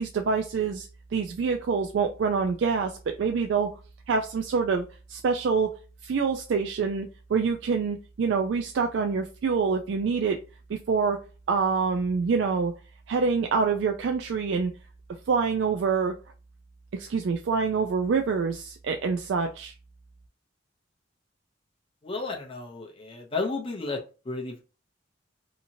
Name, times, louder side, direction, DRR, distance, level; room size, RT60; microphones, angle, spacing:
voice 1, 0.0-3.7 4.1-5.7 6.0-10.4 10.7-11.2 11.5-12.7 13.1-14.7 15.3-16.2 16.9-19.7, right 5 dB, 70° right, 4 dB, 0.3 m, -26 dB
voice 2, 22.0-24.6, left 3 dB, 30° left, 1 dB, 0.6 m, -33 dB
2.8 x 2.7 x 2.6 m, 0.33 s
head